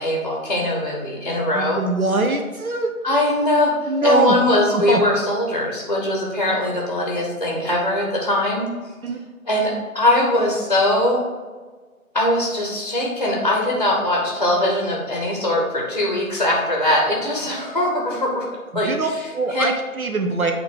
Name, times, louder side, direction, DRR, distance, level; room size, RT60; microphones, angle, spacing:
voice 1, 0.0-1.8 3.0-8.7 9.5-11.2 12.1-18.5 18.7-19.2 19.5-19.6, left 1 dB, 30° left, -2 dB, 0.8 m, -21 dB
voice 2, 1.5-2.9 3.9-4.4 4.7-5.0 9.0-9.2 18.8-20.5, right 3 dB, 75° right, 5 dB, 0.8 m, -22 dB
8.3 x 2.9 x 4.6 m, 1.4 s
figure-of-eight pair, 160°, 43 cm